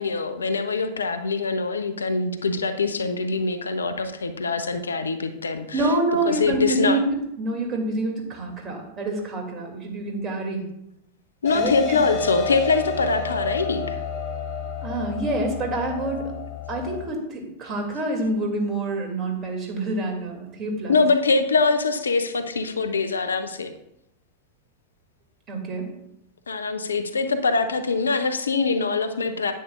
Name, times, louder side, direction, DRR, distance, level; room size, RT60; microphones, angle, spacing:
voice 1, 0.0-5.9 6.3-7.0 11.4-14.0 20.9-23.7 26.5-29.5, left 4 dB, 75° left, 9 dB, 0.7 m, -23 dB
voice 2, 5.7-10.7 11.5-12.0 14.8-16.3 16.7-20.9 25.5-25.9, right 2 dB, 30° right, 2 dB, 2.4 m, -27 dB
sound 1, 11.4-17.0, left 6 dB, 40° left, 1.0 m, -30 dB
10.0 x 9.5 x 2.4 m, 0.81 s
figure-of-eight pair, 90°, 0 cm